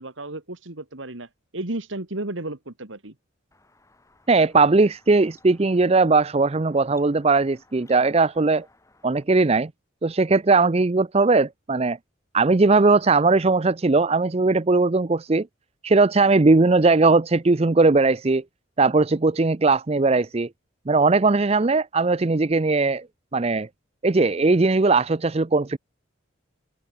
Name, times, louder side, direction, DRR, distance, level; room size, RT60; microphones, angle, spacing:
voice 1, 0.0-3.1, right 2 dB, 75° right, 2.3 m, -33 dB
sound 1, 3.5-9.2, left 2 dB, 15° left, 7.0 m, -58 dB
voice 2, 4.3-8.7 9.0-9.7 10.0-12.0 12.3-15.5 15.8-18.4 18.8-20.5 20.9-23.0 23.3-23.7 24.0-25.8, right 3 dB, 30° right, 0.5 m, -19 dB
open air
head